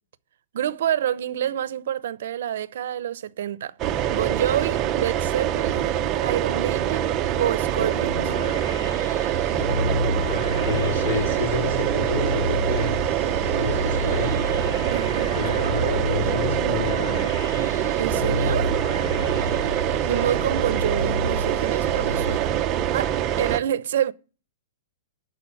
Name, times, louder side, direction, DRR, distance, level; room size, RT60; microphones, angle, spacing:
voice 1, 0.5-3.7 4.1-8.3 14.9-15.7 18.0-18.7 20.1-22.5 22.9-24.1, right 10 dB, 60° right, 0.8 m, -28 dB
sound 1, 3.8-23.6, right 10 dB, 20° right, 0.7 m, -24 dB
sound 2, 7.8-22.4, left 1 dB, 80° left, 1.1 m, -31 dB
voice 2, 10.2-12.9 13.6-14.4 15.3-17.5, left 5 dB, 60° left, 4.3 m, -30 dB
12.0 x 4.8 x 8.3 m
hypercardioid pair, 165°, 0 cm